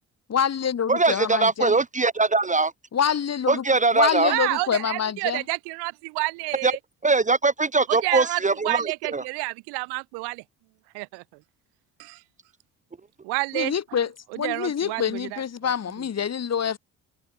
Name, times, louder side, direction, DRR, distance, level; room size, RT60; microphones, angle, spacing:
voice 1, 0.3-1.8 2.9-3.6 3.9-5.4 13.5-16.8, left 8 dB, 40° left, 1.8 m, -26 dB
voice 2, 0.9-2.7 3.5-4.3 6.6-6.7 7.0-9.2, right 3 dB, 20° right, 0.7 m, -21 dB
voice 3, 4.3-6.8 7.9-10.4 10.9-11.2 12.0-12.2 13.2-13.7 14.3-15.7, right 28 dB, 80° right, 0.8 m, -29 dB
supercardioid pair, 65°, 39 cm